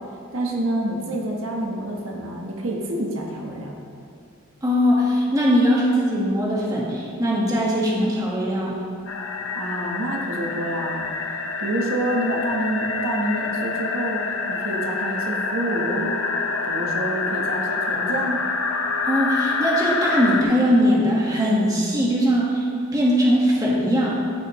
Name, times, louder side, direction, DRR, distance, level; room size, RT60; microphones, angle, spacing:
voice 1, 0.3-3.7 9.6-11.1 11.6-16.2 16.6-18.5, right 1 dB, 80° right, 0 dB, 1.1 m, -27 dB
voice 2, 4.6-8.8 19.0-24.1, equal, 15° right, -5 dB, 1.4 m, -20 dB
sound 1, 9.1-20.4, left 4 dB, 90° left, 0.7 m, -26 dB
14.0 x 6.3 x 3.0 m, 2.5 s
head